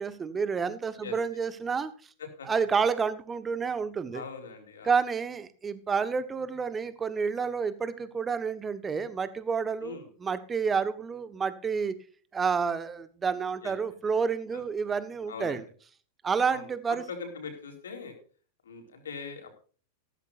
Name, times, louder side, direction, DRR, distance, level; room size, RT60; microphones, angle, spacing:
voice 1, 0.0-1.9 2.4-4.2 4.8-11.9 12.3-15.6 16.2-17.0, right 5 dB, 20° right, 13 dB, 1.5 m, -29 dB
voice 2, 4.1-4.9 9.8-10.1 13.6-13.7 14.5-14.6 15.3-15.6 16.5-18.1 18.6-19.5, left 5 dB, 65° left, 4 dB, 4.4 m, -41 dB
16.0 x 14.0 x 2.6 m, 0.40 s
figure-of-eight pair, 90°, 0 cm